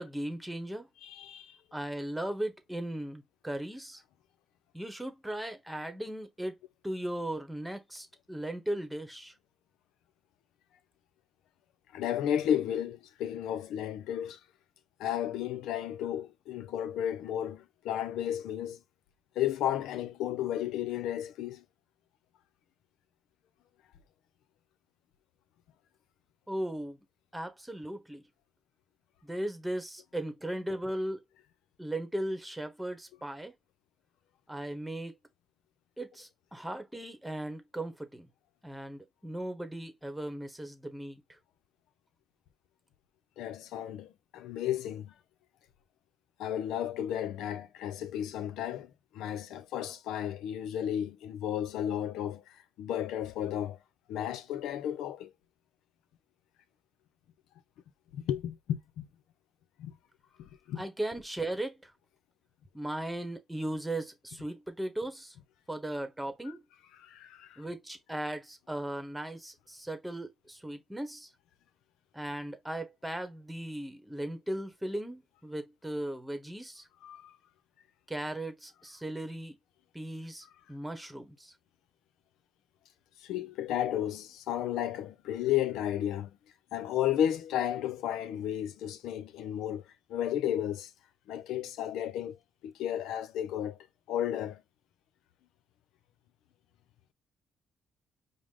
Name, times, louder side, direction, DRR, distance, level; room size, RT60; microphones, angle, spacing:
voice 1, 0.0-0.9 1.7-4.0 4.7-6.6 6.8-9.3 26.5-27.0 27.3-28.2 29.2-31.2 31.8-33.5 34.5-35.1 36.0-38.3 38.6-41.4 60.8-61.9 62.7-65.4 65.7-66.6 67.6-71.3 72.1-76.9 78.1-79.5 79.9-81.5, right 1 dB, 5° right, 1.1 m, -37 dB
voice 2, 1.0-1.6 11.9-14.4 15.0-18.8 19.4-21.6 43.4-45.1 46.4-53.8 54.1-55.3 58.1-59.1 59.8-59.9 60.4-60.8 67.0-67.6 77.0-77.3 83.2-86.3 86.7-90.9 91.3-92.4 92.6-93.8 94.1-94.6, left 10 dB, 90° left, 0.6 m, -33 dB
5.1 x 2.2 x 3.7 m
cardioid pair, 90°, 0 cm